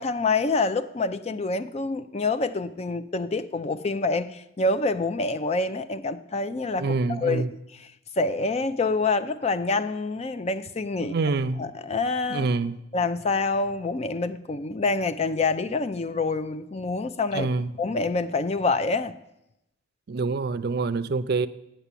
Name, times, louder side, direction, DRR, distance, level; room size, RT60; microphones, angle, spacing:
voice 1, 0.0-7.4 8.2-11.1 11.6-12.5 12.9-17.5 17.8-19.1, left 3 dB, 30° left, 0.4 m, -26 dB
voice 2, 6.8-7.5 11.0-11.6 12.3-12.8 17.3-17.7 20.1-21.5, right 3 dB, 55° right, 0.4 m, -26 dB
8.1 x 7.0 x 8.2 m
head